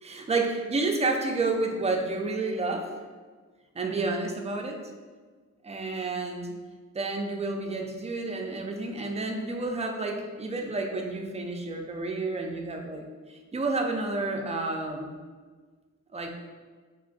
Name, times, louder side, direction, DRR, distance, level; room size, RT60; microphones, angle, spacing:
voice 1, 0.0-3.0 3.7-4.8 5.6-6.6 6.9-15.1 16.1-16.3, right 3 dB, 20° right, 2 dB, 0.4 m, -30 dB
3.5 x 3.2 x 3.9 m, 1.4 s
wide cardioid pair, 175°, 29 cm